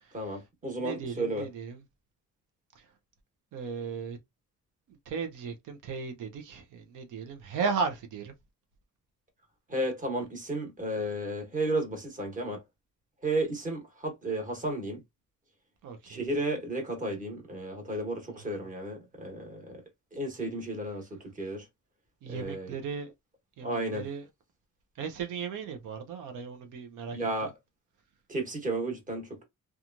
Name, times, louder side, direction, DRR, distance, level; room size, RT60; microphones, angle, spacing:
voice 1, 0.1-1.4 9.7-12.6 13.2-15.0 16.0-19.8 20.1-21.1 21.4-21.7 22.3-22.8 23.6-24.0 27.1-27.5 28.3-29.4, right 1 dB, 25° right, 1.2 m, -33 dB
voice 2, 0.8-1.8 3.5-4.2 4.9-8.3 15.8-16.2 18.3-18.4 22.2-23.1 23.6-24.2 25.0-27.2, right 5 dB, 90° right, 0.7 m, -36 dB
2.9 x 2.3 x 2.5 m
cardioid pair, 145°, 31 cm